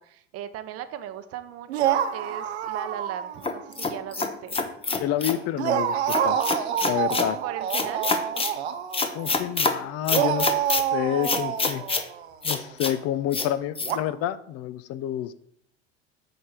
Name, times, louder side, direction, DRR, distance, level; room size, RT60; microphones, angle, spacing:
voice 1, 0.0-4.6 7.4-8.1, right 11 dB, 50° right, 10 dB, 0.8 m, -37 dB
sound 1, 1.7-3.6 3.9-4.1 5.6-9.4 10.1-12.5 13.8-14.0, right 9 dB, 90° right, 0.7 m, -27 dB
sound 2, 3.4-5.4 6.1-7.3 7.7-8.5 8.9-9.7 10.1-10.8 11.2-12.1 12.4-12.9 13.3-13.5 13.7-13.9, left 4 dB, 20° left, 0.8 m, -26 dB
voice 2, 5.0-6.5 6.8-7.4 9.1-11.8 12.4-15.3, left 12 dB, 50° left, 15 dB, 0.6 m, -29 dB
7.9 x 3.4 x 5.8 m, 0.70 s
hypercardioid pair, 85°, 32 cm